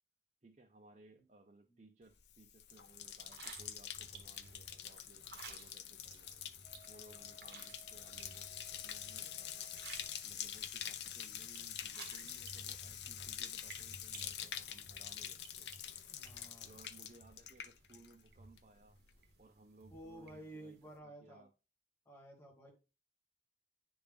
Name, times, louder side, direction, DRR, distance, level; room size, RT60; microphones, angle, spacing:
voice 1, 0.4-6.4 6.9-9.7 10.2-15.7 16.5-19.0 19.4-21.5, right 2 dB, 40° right, 0.6 m, -62 dB
Bathtub (filling or washing), 2.2-18.3 18.6-19.1, left 10 dB, 75° left, 0.5 m, -46 dB
sound 1, 3.2-21.0, right 4 dB, 70° right, 1.1 m, -57 dB
Wind instrument woodwind instrument, 6.6-10.3, left 1 dB, 40° left, 2.8 m, -63 dB
voice 2, 16.1-16.8 19.9-21.5 22.1-22.7, right 1 dB, 15° left, 1.7 m, -53 dB
9.9 x 3.5 x 3.4 m
head